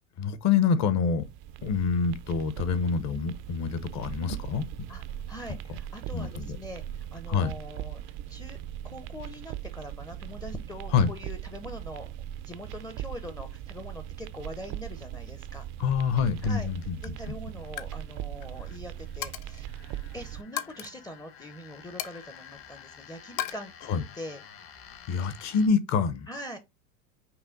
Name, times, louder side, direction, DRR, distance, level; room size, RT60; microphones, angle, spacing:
voice 1, 0.2-1.3 1.6-4.7 6.1-6.6 7.3-7.5 10.9-11.1 15.8-17.3 23.9-24.0 25.1-26.3, left 6 dB, 40° left, 0.8 m, -26 dB
sound 1, 1.2-20.4, right 12 dB, 50° right, 0.5 m, -40 dB
voice 2, 4.9-6.8 7.1-8.0 8.3-8.6 8.8-12.1 12.4-15.7 16.4-16.7 17.0-23.9 24.2-24.4 26.3-26.6, left 1 dB, 10° left, 0.5 m, -43 dB
sound 2, 16.3-25.7, left 8 dB, 60° left, 1.4 m, -52 dB
Coin (dropping), 16.5-16.7 17.0-17.3 17.6-17.9 18.2-18.5 19.2-19.7 20.6-20.9 22.0-22.9 23.4-23.5, left 11 dB, 75° left, 0.7 m, -36 dB
5.7 x 2.1 x 3.7 m
hypercardioid pair, 105°, 42 cm